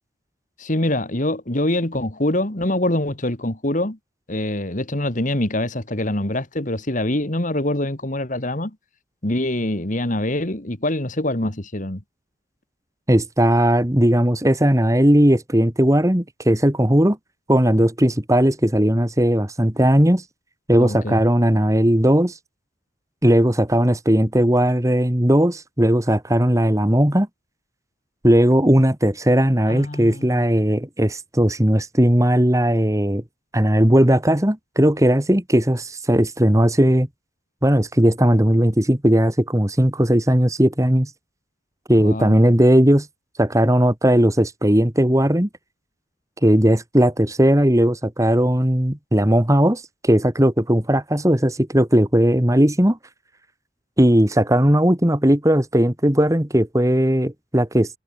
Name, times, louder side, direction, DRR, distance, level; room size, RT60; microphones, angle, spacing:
voice 1, 0.6-4.0 4.3-8.8 9.2-12.0 20.8-21.2 29.7-30.4 42.0-42.4, left 1 dB, 40° left, 2.2 m, -24 dB
voice 2, 13.1-17.2 17.5-20.2 20.7-22.3 23.2-27.3 28.2-33.2 33.5-37.1 37.6-41.1 41.9-43.1 43.4-45.5 46.4-53.0 54.0-57.9, equal, 15° right, 1.8 m, -17 dB
head